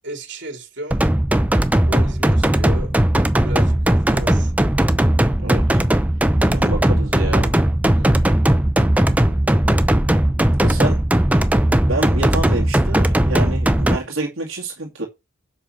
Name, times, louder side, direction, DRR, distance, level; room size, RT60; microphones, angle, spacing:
voice 1, 0.0-1.0 1.8-2.9 3.4-4.5 8.0-8.3 10.7-10.9 11.3-11.5, right 1 dB, 55° right, 2.8 m, -35 dB
sound 1, 0.9-14.0, right 1 dB, 5° right, 0.6 m, -17 dB
voice 2, 5.4-5.8 6.5-7.5 10.6-11.0 11.9-15.1, right 2 dB, 75° right, 2.3 m, -27 dB
7.6 x 5.6 x 6.5 m
head